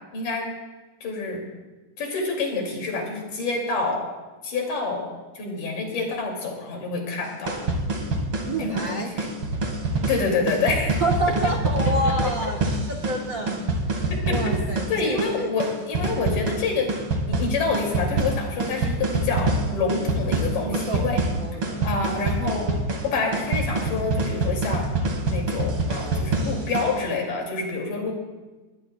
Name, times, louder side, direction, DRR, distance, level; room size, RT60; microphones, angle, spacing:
voice 1, 0.1-0.5 1.0-1.4 2.0-4.1 4.4-7.6 8.6-9.3 10.1-11.0 11.8-11.9 12.2-12.5 14.3-14.4 14.9-17.0 17.3-21.2 21.8-22.7 23.0-24.9 25.3-28.1, left 3 dB, 75° left, 0 dB, 4.3 m, -27 dB
sound 1, 7.2-27.0, right 2 dB, 45° right, 2.4 m, -26 dB
voice 2, 8.5-9.1 11.0-12.6 12.9-13.6 14.3-15.5 20.6-21.1 21.4-21.9, right 1 dB, 80° right, 0 dB, 0.7 m, -28 dB
20.5 x 19.0 x 2.3 m, 1.2 s
omnidirectional pair, 3.8 m